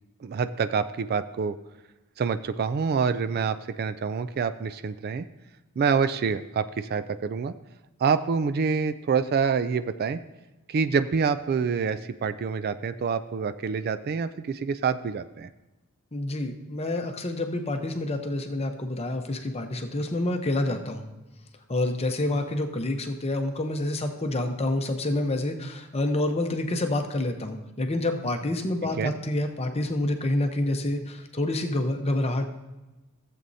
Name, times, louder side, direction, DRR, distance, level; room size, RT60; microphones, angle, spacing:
voice 1, 0.2-1.5 2.2-5.2 5.8-7.5 8.0-10.2 10.7-15.5 29.0-29.1, right 5 dB, 45° right, 12 dB, 0.3 m, -26 dB
voice 2, 16.1-21.0 21.7-32.5, left 1 dB, 25° left, 5 dB, 0.8 m, -28 dB
15.5 x 7.6 x 2.7 m, 1.1 s
head